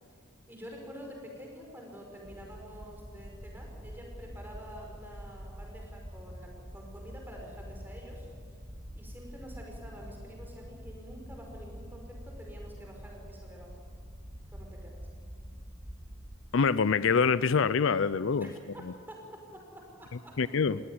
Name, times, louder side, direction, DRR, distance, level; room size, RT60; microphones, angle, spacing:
voice 1, 0.5-8.3 9.0-13.8 14.5-15.1 18.4-18.5 18.7-20.4, equal, 10° right, 0 dB, 5.4 m, -48 dB
sound 1, 2.2-16.4, equal, 30° right, 2.2 m, -46 dB
voice 2, 16.5-18.5 18.8-18.9 20.4-20.8, left 5 dB, 70° left, 16 dB, 0.5 m, -25 dB
21.0 x 17.5 x 9.7 m, 2.2 s
head